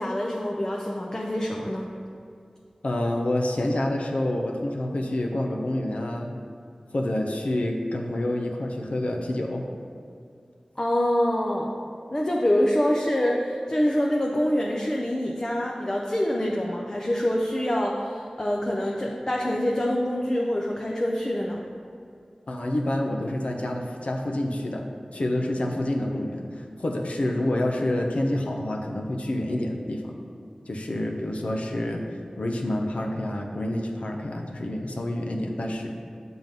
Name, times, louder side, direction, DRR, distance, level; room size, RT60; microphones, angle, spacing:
voice 1, 0.0-1.9 10.8-11.7 12.1-21.6, left 1 dB, 30° left, -1 dB, 0.6 m, -25 dB
voice 2, 2.8-6.3 6.9-9.6 22.5-24.9 25.1-30.1 30.7-32.0 32.4-35.9, left 1 dB, 70° left, 1 dB, 0.8 m, -28 dB
7.4 x 3.8 x 5.3 m, 2.5 s
wide cardioid pair, 70°, 2 cm